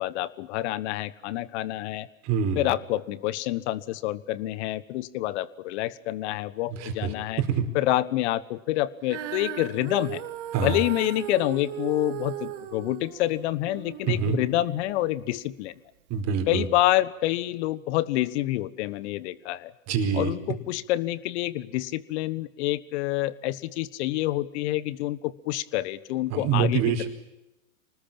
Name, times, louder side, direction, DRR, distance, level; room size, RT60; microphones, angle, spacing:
voice 1, 0.0-2.1 2.5-7.4 7.7-10.2 10.6-15.7 16.5-19.7 20.1-26.8, left 15 dB, 55° left, 18 dB, 1.5 m, -27 dB
voice 2, 2.2-2.6 6.7-7.7 10.5-10.8 14.1-14.4 16.1-16.7 19.9-20.3 26.3-27.1, right 7 dB, 40° right, 6 dB, 4.7 m, -26 dB
Female singing, 9.0-15.4 16.1-16.2, right 12 dB, 60° right, 2.6 m, -37 dB
26.0 x 20.0 x 8.7 m, 0.92 s
hypercardioid pair, 105°, 41 cm